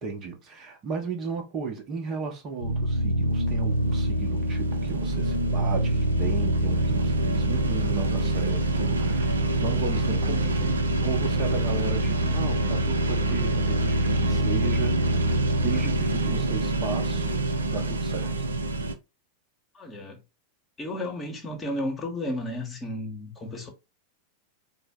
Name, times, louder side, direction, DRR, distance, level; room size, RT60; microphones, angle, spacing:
voice 1, 0.0-17.3 17.7-18.5, right 5 dB, 30° right, 0.8 m, -35 dB
sound 1, 2.6-18.9, right 1 dB, 75° right, 0.5 m, -25 dB
voice 2, 19.7-20.2 20.8-23.7, left 1 dB, 20° left, 1.1 m, -33 dB
4.3 x 2.1 x 3.5 m
figure-of-eight pair, 90°, 0 cm